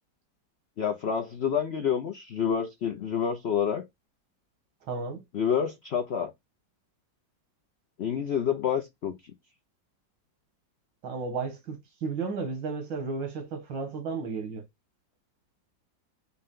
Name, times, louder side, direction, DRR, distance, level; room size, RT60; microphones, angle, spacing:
voice 1, 0.8-3.9 5.3-6.3 8.0-9.3, left 7 dB, 90° left, 0.5 m, -28 dB
voice 2, 4.9-5.2 11.0-14.6, right 4 dB, 85° right, 2.1 m, -33 dB
5.9 x 2.2 x 3.7 m
omnidirectional pair, 2.0 m